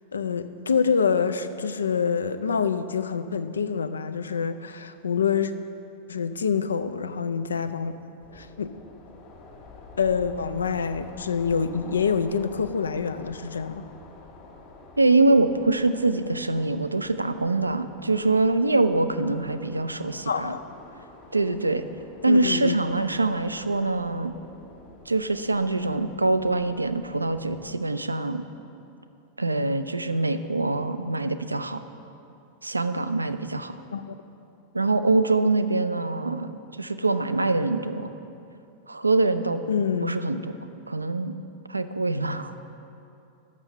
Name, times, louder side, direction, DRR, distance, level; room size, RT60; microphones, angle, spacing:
voice 1, 0.1-5.5 6.1-8.0 8.3-8.7 10.0-13.9 20.3-20.6 22.3-22.8 33.9-34.0 39.7-40.2, left 6 dB, 70° left, 11 dB, 0.3 m, -26 dB
sound 1, 8.2-27.7, left 3 dB, 45° left, 1.5 m, -48 dB
voice 2, 15.0-20.5 21.3-21.8 22.2-24.3 25.1-28.4 29.4-31.8 32.6-33.8 34.7-38.1 38.9-39.6 40.0-40.4 40.9-41.3 41.7-42.5, right 2 dB, 80° right, 11 dB, 0.3 m, -24 dB
7.4 x 6.2 x 6.6 m, 2.7 s
figure-of-eight pair, 90°, 0 cm